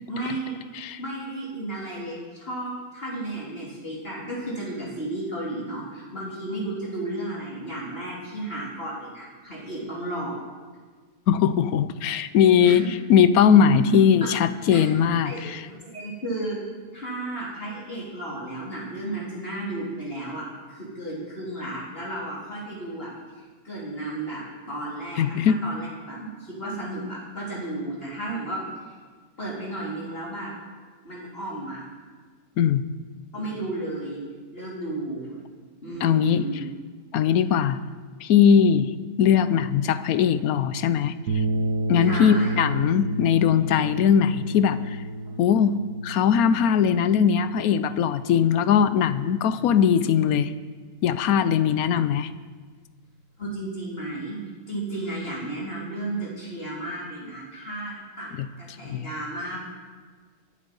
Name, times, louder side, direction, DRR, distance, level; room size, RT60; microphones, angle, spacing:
voice 1, 0.1-0.6 1.0-10.5 12.6-12.7 13.5-14.0 14.7-14.8 15.2-15.4 15.7-16.6 16.9-23.1 23.4-28.9 29.4-30.5 31.0-31.8 33.3-34.2 34.5-35.4 35.8-36.7 42.0-42.5 53.4-54.4 54.7-58.3 58.6-59.6, right 1 dB, 40° left, -6 dB, 3.7 m, -33 dB
voice 2, 11.3-12.8 13.1-15.6 25.2-25.6 32.6-32.8 36.0-36.5 37.1-37.8 38.2-38.9 39.2-41.2 41.9-44.8 45.4-45.8 46.0-50.5 51.0-52.3 58.4-58.5 58.8-59.1, left 8 dB, 75° left, 13 dB, 1.1 m, -20 dB
sound 1, 41.3-49.7, right 2 dB, 85° right, 1.6 m, -31 dB
22.0 x 8.4 x 5.4 m, 1.5 s
omnidirectional pair, 1.6 m